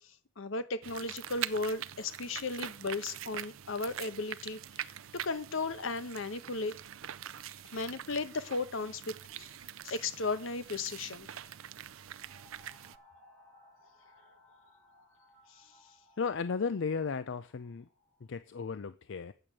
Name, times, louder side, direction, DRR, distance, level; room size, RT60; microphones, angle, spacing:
voice 1, 0.4-4.9 5.2-6.8 7.7-9.5 9.8-11.3 15.6-15.7, left 3 dB, 80° left, 1.0 m, -35 dB
sound 1, 0.8-13.0, right 11 dB, 90° right, 0.5 m, -44 dB
sound 2, 12.2-18.3, left 1 dB, 15° left, 3.3 m, -62 dB
voice 2, 16.2-17.9 18.3-19.3, left 5 dB, 65° left, 0.5 m, -34 dB
8.7 x 6.5 x 7.5 m
head